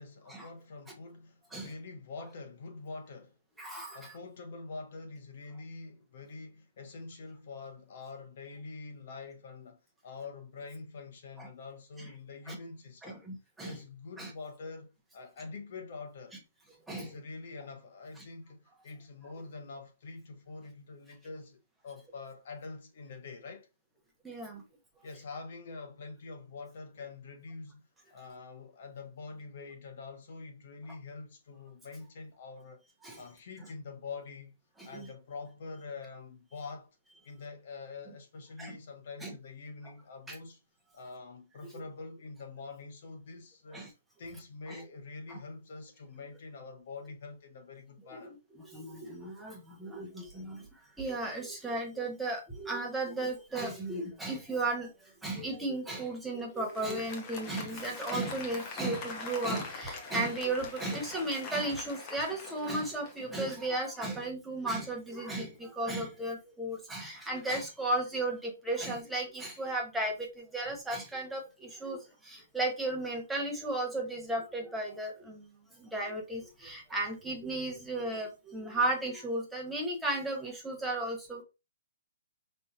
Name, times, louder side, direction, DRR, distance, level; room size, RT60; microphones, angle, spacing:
voice 1, 0.0-3.3 3.9-13.3 13.6-16.4 16.9-21.6 21.8-23.7 25.0-27.8 28.1-32.8 33.2-34.6 34.8-36.9 37.2-40.6 40.9-43.9 44.2-48.3, left 4 dB, 50° left, 1.3 m, -45 dB
voice 2, 3.6-4.1 11.4-11.5 12.0-12.1 12.5-12.6 13.0-13.8 14.2-14.3 16.9-17.1 24.2-24.6 33.0-33.2 34.9-35.1 38.6-38.7 39.2-39.3 40.3-40.4 43.7-43.9 44.7-44.8 45.3-45.4 48.7-50.6 51.0-54.9 55.2-70.1 70.5-71.4 71.8-72.0 72.3-75.4 75.9-81.4, right 2 dB, 5° right, 1.1 m, -34 dB
Applause, 56.6-63.5, left 4 dB, 25° left, 1.0 m, -43 dB
5.2 x 3.3 x 2.8 m
hypercardioid pair, 165°, 0 cm